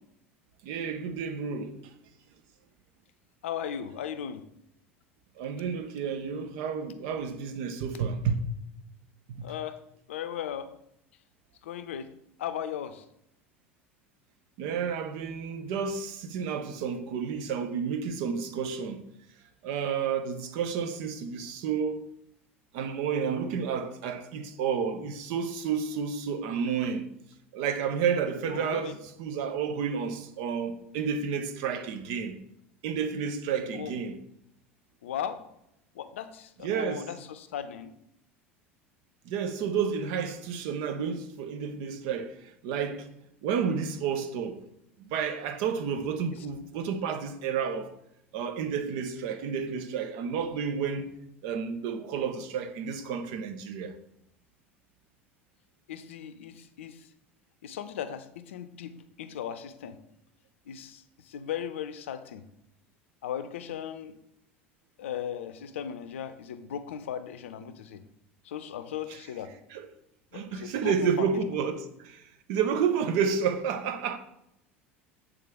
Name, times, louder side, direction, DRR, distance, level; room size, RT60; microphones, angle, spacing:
voice 1, 0.6-1.9 5.4-8.6 9.3-9.5 14.6-19.0 19.6-22.1 22.7-27.1 27.5-32.4 32.8-34.2 36.6-37.1 39.3-43.1 43.4-44.6 45.0-47.9 48.3-51.2 51.4-53.9 69.7-69.9 70.3-72.2 72.5-74.2, right 6 dB, 60° right, 0.7 m, -31 dB
voice 2, 3.4-4.4 9.4-9.8 10.1-10.7 11.6-12.1 12.4-13.0 28.5-29.0 33.7-33.9 35.0-35.4 35.9-37.9 55.9-57.1 57.6-60.0 60.7-62.4 63.2-64.1 65.0-68.0 68.4-69.5 70.3-71.3, left 9 dB, 70° left, 0.5 m, -37 dB
8.3 x 3.5 x 3.5 m
figure-of-eight pair, 70°, 7 cm